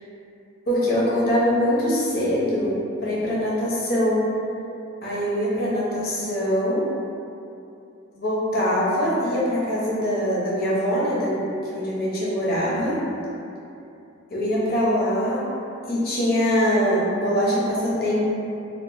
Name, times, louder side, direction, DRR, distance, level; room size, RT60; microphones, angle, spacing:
voice 1, 0.7-4.3 5.0-6.8 8.1-13.0 14.3-15.4 15.9-18.2, equal, 50° left, -7 dB, 0.6 m, -23 dB
2.8 x 2.1 x 2.4 m, 2.7 s
head